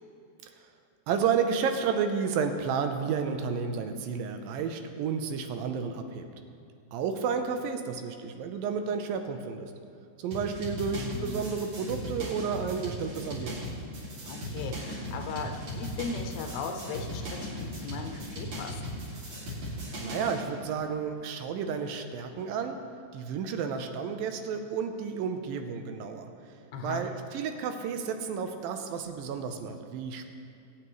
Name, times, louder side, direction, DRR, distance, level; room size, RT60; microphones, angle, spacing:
voice 1, 1.1-6.3 6.9-9.7 10.2-13.6 20.0-22.8 23.1-26.3 26.8-30.2, right 6 dB, 80° right, 6 dB, 2.5 m, -31 dB
sound 1, 10.3-20.4, equal, 45° right, 3.4 m, -37 dB
voice 2, 10.9-11.5 14.3-18.8 26.7-27.1, left 4 dB, 80° left, 5 dB, 2.6 m, -37 dB
20.5 x 9.0 x 3.1 m, 2.5 s
omnidirectional pair, 4.2 m